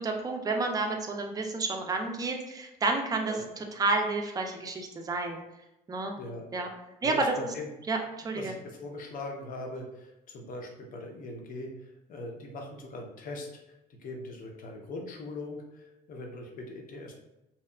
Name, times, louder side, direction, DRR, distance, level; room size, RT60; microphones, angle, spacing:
voice 1, 0.0-5.4 5.9-6.2 6.5-6.7 7.0-7.3 7.9-8.0 8.2-8.5, right 3 dB, 20° right, 3 dB, 0.4 m, -30 dB
voice 2, 7.0-7.7 8.3-13.7 14.0-17.1, left 2 dB, 55° left, 1 dB, 0.6 m, -41 dB
2.7 x 2.3 x 2.2 m, 0.94 s
cardioid pair, 110°, 17 cm